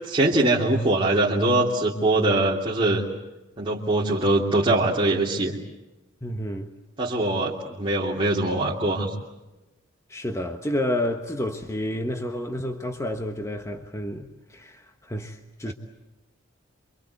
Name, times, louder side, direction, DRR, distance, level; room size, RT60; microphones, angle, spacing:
voice 1, 0.0-3.0 3.6-5.5 7.0-9.1 15.6-15.7, right 2 dB, 25° right, 2.9 m, -22 dB
voice 2, 6.2-6.7 10.1-15.7, left 1 dB, 15° left, 1.3 m, -30 dB
28.0 x 25.0 x 8.2 m
head